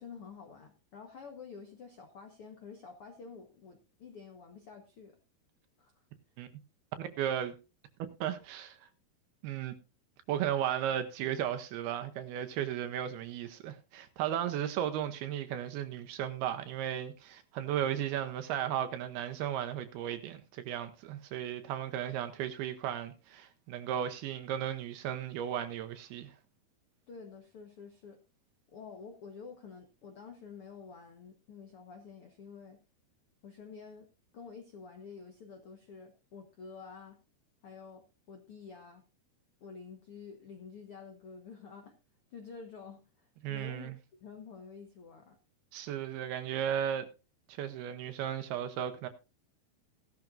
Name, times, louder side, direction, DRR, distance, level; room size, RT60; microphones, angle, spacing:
voice 1, 0.0-5.2 5.8-5.9 27.1-28.2 28.7-32.8 33.4-34.1 34.3-37.2 37.6-39.0 39.6-41.9 42.3-43.9 44.2-45.4, left 5 dB, 80° left, 1.2 m, -49 dB
voice 2, 7.0-7.5 8.2-8.8 9.4-9.8 10.3-26.3 43.4-43.9 45.7-47.1 47.5-49.1, right 10 dB, 80° right, 2.7 m, -35 dB
16.0 x 12.0 x 2.5 m
omnidirectional pair, 4.7 m